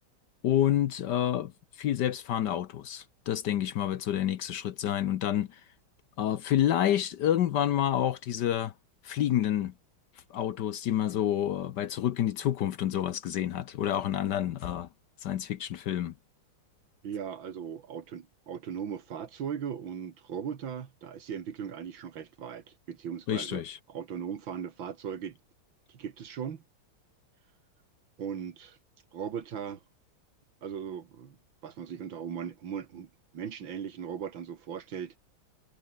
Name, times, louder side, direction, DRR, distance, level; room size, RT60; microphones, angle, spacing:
voice 1, 0.4-5.6 6.2-8.7 9.0-9.7 10.3-14.9 15.2-16.1 23.3-23.8, left 11 dB, 65° left, 1.2 m, -28 dB
voice 2, 17.0-23.6 23.9-25.4 25.9-26.6 28.2-28.8 29.1-29.8 30.6-31.4 31.6-35.2, right 8 dB, 65° right, 2.5 m, -38 dB
omnidirectional pair, 2.3 m